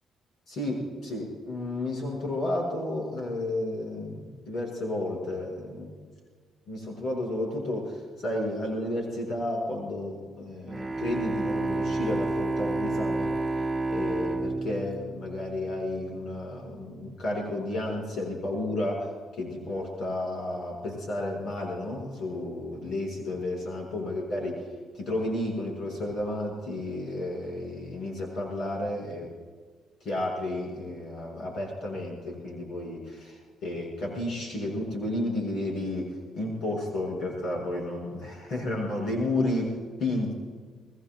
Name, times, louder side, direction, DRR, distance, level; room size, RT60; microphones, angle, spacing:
voice 1, 0.5-5.9 6.7-13.3 13.9-24.6 24.9-29.3 30.0-40.4, left 1 dB, 65° left, -1 dB, 6.6 m, -32 dB
Bowed string instrument, 10.7-15.9, right 2 dB, 20° right, 2.1 m, -30 dB
26.0 x 20.0 x 2.5 m, 1.5 s
cardioid pair, 90°, 0 cm